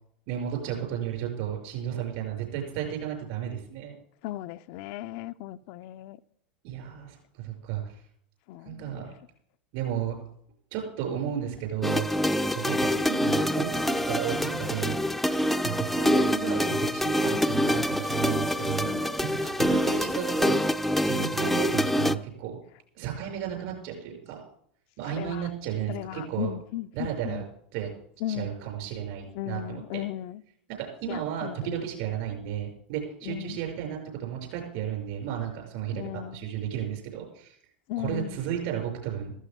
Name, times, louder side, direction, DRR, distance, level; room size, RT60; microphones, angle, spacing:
voice 1, 0.3-3.9 6.6-7.8 8.6-9.1 9.7-10.1 10.7-12.1 12.5-18.9 19.2-20.6 21.0-22.6 23.0-24.4 25.0-26.5 26.9-27.4 27.7-27.9 28.3-30.0 30.8-37.6 38.0-39.3, right 10 dB, 60° right, 6.1 m, -33 dB
voice 2, 4.2-6.2 8.5-9.1 18.8-19.2 25.1-25.5 25.9-27.4 28.2-28.5 29.3-30.4 31.1-31.8 33.2-33.6 35.9-36.5 37.9-38.4, left 14 dB, 55° left, 0.5 m, -36 dB
sound 1, 11.8-22.2, equal, ahead, 0.6 m, -26 dB
15.0 x 14.5 x 3.6 m
hypercardioid pair, 90°, 6 cm